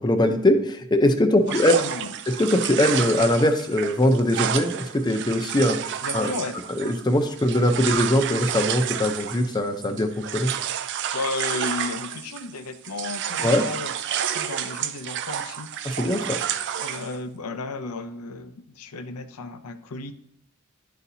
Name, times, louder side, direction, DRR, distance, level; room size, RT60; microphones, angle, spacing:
voice 1, 0.0-1.8 2.3-6.3 6.8-10.5 13.4-13.6 15.8-16.4, left 1 dB, 20° left, 7 dB, 0.6 m, -21 dB
voice 2, 1.5-2.1 6.0-6.6 11.1-15.7 16.7-20.1, left 3 dB, 85° left, 9 dB, 0.6 m, -34 dB
sound 1, 1.5-12.6 12.8-17.2, right 9 dB, 55° right, 0.4 m, -30 dB
11.0 x 4.1 x 2.8 m, 0.75 s
head